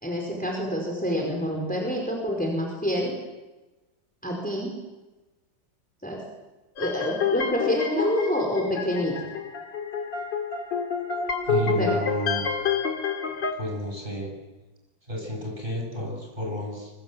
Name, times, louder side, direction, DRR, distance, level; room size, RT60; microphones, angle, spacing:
voice 1, 0.0-3.1 4.2-4.7 6.0-6.2 6.8-9.2 11.7-12.0, equal, 5° left, 0 dB, 4.8 m, -27 dB
sound 1, 6.8-13.5, left 5 dB, 90° left, 2.9 m, -28 dB
voice 2, 11.5-12.5 13.6-14.3 15.1-16.9, equal, 30° right, 0 dB, 8.2 m, -31 dB
25.0 x 23.5 x 7.6 m, 1.1 s
omnidirectional pair, 1.9 m